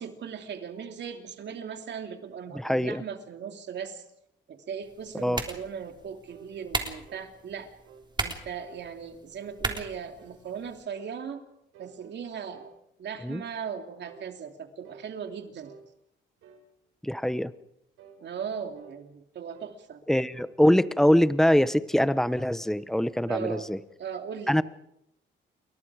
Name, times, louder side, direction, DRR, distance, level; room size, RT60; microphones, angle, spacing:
voice 1, 0.0-4.0 4.5-7.7 8.2-11.4 11.8-12.7 13.0-15.7 18.2-20.0 23.3-24.6, right 7 dB, 60° right, 5 dB, 2.9 m, -38 dB
voice 2, 2.5-3.0 5.1-5.4 13.2-13.4 17.0-17.5 20.1-23.8 24.5-24.6, equal, ahead, 15 dB, 1.0 m, -23 dB
sound 1, 4.8-10.8, right 3 dB, 20° right, 3.5 m, -37 dB
sound 2, 6.3-6.5 7.1-7.3 7.8-8.1 8.6-8.9 9.4-9.6 10.2-10.4 11.0-11.2 11.7-12.8 13.3-13.5 14.1-14.3 14.8-15.1 15.6-15.9 16.4-16.7 17.2-17.4 18.0-18.2 18.8-19.0 19.5-19.8 20.3-20.6 21.1-21.3, right 6 dB, 85° right, 5.0 m, -52 dB
28.5 x 22.5 x 4.9 m, 0.81 s
cardioid pair, 90°, 20 cm